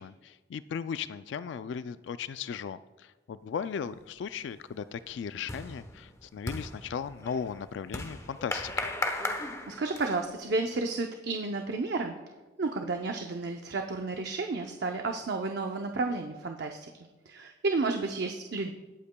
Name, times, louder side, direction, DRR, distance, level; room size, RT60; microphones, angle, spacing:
voice 1, 0.0-8.9, left 7 dB, 70° left, 14 dB, 0.3 m, -37 dB
sound 1, 3.8-4.2 4.6-10.3, left 2 dB, 15° left, 0.9 m, -37 dB
voice 2, 9.3-12.2 12.6-16.9 17.3-18.7, right 3 dB, 60° right, 4 dB, 0.6 m, -32 dB
19.5 x 8.4 x 2.2 m, 1.2 s
head